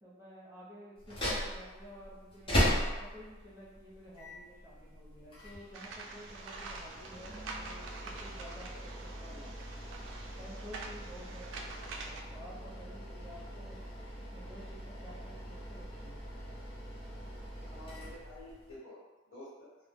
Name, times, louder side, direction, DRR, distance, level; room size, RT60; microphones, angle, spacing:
voice 1, 0.0-9.5 10.4-13.8 14.3-16.2, equal, 15° right, -8 dB, 0.6 m, -52 dB
sound 1, 1.0-18.8, equal, 25° left, 0.7 m, -39 dB
sound 2, 5.7-12.2, right 3 dB, 75° right, 0.3 m, -46 dB
voice 2, 17.6-19.0 19.2-19.7, left 1 dB, 80° left, -9 dB, 1.3 m, -50 dB
2.1 x 2.1 x 3.4 m, 1.2 s
head